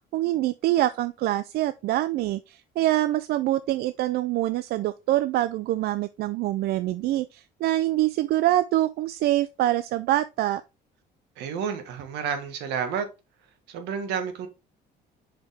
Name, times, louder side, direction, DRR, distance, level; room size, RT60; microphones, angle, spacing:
voice 1, 0.1-10.6, right 15 dB, 70° right, 0.4 m, -25 dB
voice 2, 11.4-13.1 13.7-14.5, right 7 dB, 90° right, 1.5 m, -30 dB
6.1 x 5.1 x 3.4 m
cardioid pair, 110°, 17 cm